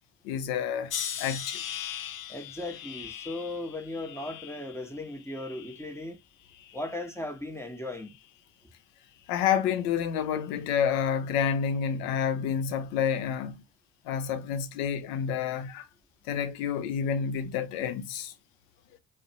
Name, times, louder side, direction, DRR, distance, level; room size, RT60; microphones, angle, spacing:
voice 1, 0.2-0.9 1.2-1.6 9.3-13.6 14.0-15.9 16.3-18.3, left 8 dB, 85° left, 0.6 m, -29 dB
sound 1, 0.9-6.1 6.5-7.2 7.9-8.2, left 9 dB, 45° left, 0.5 m, -40 dB
voice 2, 2.3-6.2 6.7-8.2, left 2 dB, 5° left, 0.8 m, -37 dB
2.5 x 2.2 x 2.7 m
hypercardioid pair, 40°, 46 cm